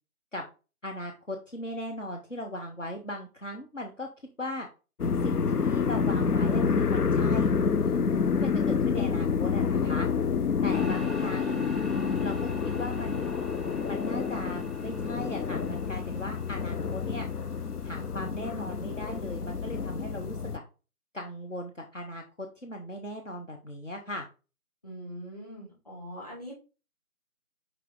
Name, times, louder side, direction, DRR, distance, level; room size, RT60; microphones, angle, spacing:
voice 1, 0.8-4.1 4.4-4.7 5.2-7.5 8.4-10.1 10.6-11.6 12.1-12.4 12.7-13.3 13.9-17.3 17.8-20.6 21.1-24.2, left 1 dB, 55° left, 2 dB, 1.0 m, -38 dB
sound 1, 5.0-20.6, left 5 dB, 90° left, 0.6 m, -28 dB
voice 2, 7.8-8.3 24.8-26.5, equal, 25° left, -4 dB, 2.6 m, -42 dB
sound 2, 10.7-20.2, left 1 dB, ahead, 0.6 m, -45 dB
5.5 x 4.9 x 3.8 m, 0.32 s
figure-of-eight pair, 175°, 44 cm